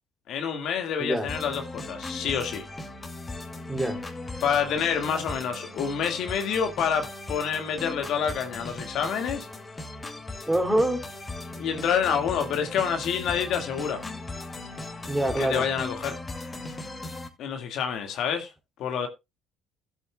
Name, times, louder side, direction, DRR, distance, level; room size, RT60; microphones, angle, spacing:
voice 1, 0.3-2.7 4.4-9.5 11.5-14.0 15.4-16.2 17.4-18.5 18.8-19.1, left 7 dB, 65° left, 1.8 m, -28 dB
sound 1, 1.3-17.3, left 2 dB, 25° left, 2.4 m, -38 dB
voice 2, 3.7-4.0 10.5-11.0 15.1-15.7, right 1 dB, 10° right, 2.7 m, -25 dB
16.0 x 8.2 x 2.3 m
hypercardioid pair, 60°, 0 cm